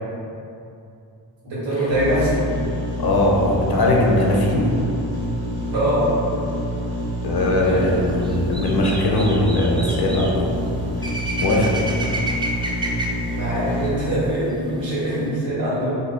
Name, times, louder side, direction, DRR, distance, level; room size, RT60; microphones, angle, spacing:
voice 1, 1.4-2.4 5.7-6.0 7.7-7.8 12.0-12.2 13.4-16.0, right 1 dB, 75° right, -9 dB, 1.4 m, -23 dB
sound 1, 1.9-13.9, equal, 55° right, 0.9 m, -27 dB
voice 2, 3.0-4.8 7.2-10.5 11.4-11.8, left 1 dB, 55° left, -2 dB, 0.7 m, -20 dB
sound 2, 7.6-15.3, right 1 dB, 10° right, 0.3 m, -32 dB
2.9 x 2.3 x 4.1 m, 2.6 s
cardioid pair, 45°, 45 cm